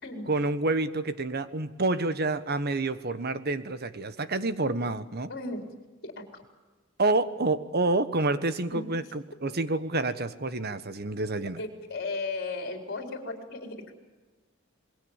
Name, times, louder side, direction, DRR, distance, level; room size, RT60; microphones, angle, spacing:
voice 1, 0.3-5.3 7.0-11.6, right 2 dB, 50° right, 12 dB, 1.3 m, -28 dB
voice 2, 5.3-5.6 6.0-6.2 8.7-8.8 11.6-13.9, left 3 dB, 50° left, 4 dB, 4.3 m, -35 dB
27.0 x 21.5 x 7.4 m, 1.3 s
head